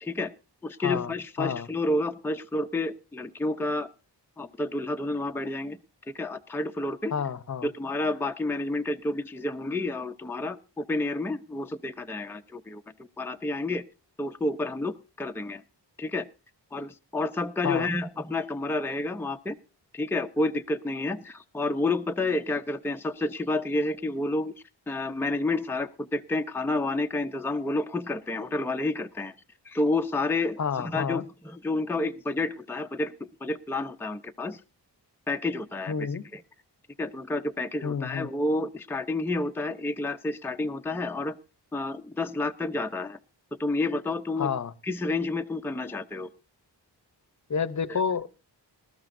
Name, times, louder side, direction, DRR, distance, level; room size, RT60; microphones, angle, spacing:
voice 1, 0.0-0.3 0.6-3.9 4.4-5.8 6.1-7.1 7.6-12.8 13.2-13.8 14.2-15.6 16.0-16.3 16.7-19.6 19.9-24.5 24.9-29.3 29.7-33.1 33.4-34.6 35.3-36.4 37.0-41.4 41.7-43.2 43.6-44.5 44.8-46.3 47.9-48.0, left 2 dB, 5° left, 0.6 m, -30 dB
voice 2, 0.8-1.1 1.4-1.7 7.1-7.7 17.6-17.9 30.6-31.2 35.9-36.3 37.8-38.3 44.4-44.7 47.5-48.3, left 6 dB, 40° left, 0.8 m, -29 dB
19.5 x 13.0 x 2.6 m
wide cardioid pair, 75°, 43 cm